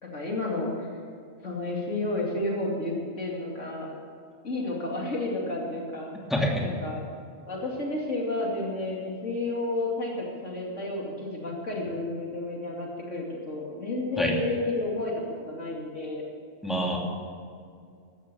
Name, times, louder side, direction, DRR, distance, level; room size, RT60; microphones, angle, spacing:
voice 1, 0.0-0.9 1.4-3.9 4.4-6.1 6.6-7.0 7.5-15.1 15.5-16.2, left 2 dB, 90° left, -2 dB, 3.2 m, -31 dB
voice 2, 6.3-6.6 14.2-14.3 16.6-17.0, equal, ahead, -1 dB, 2.4 m, -26 dB
15.0 x 12.5 x 7.1 m, 2.3 s
omnidirectional pair, 1.2 m